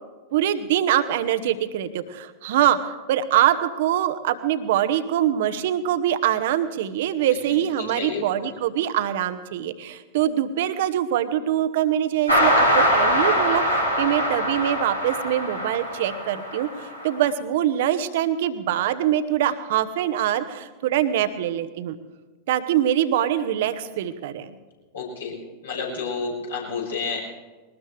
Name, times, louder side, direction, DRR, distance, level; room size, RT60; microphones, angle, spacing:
voice 1, 0.3-22.0 22.5-24.5, right 11 dB, 55° right, 11 dB, 1.1 m, -24 dB
voice 2, 7.3-8.5 24.9-25.4 25.6-27.4, left 4 dB, 70° left, -4 dB, 6.6 m, -31 dB
sound 1, 12.3-17.1, equal, 90° left, 3.7 m, -22 dB
21.5 x 19.5 x 3.4 m, 1.3 s
figure-of-eight pair, 90°, 0 cm